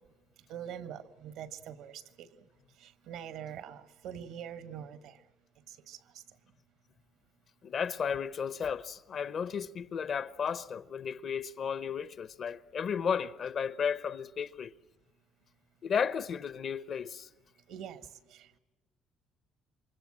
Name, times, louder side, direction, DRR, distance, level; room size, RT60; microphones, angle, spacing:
voice 1, 0.5-2.3 2.8-5.2 5.7-6.0 17.7-18.6, right 9 dB, 80° right, 1.5 m, -44 dB
voice 2, 7.6-14.7 15.8-17.3, left 7 dB, 45° left, 0.8 m, -34 dB
28.0 x 24.0 x 7.5 m
cardioid pair, 115°, 0 cm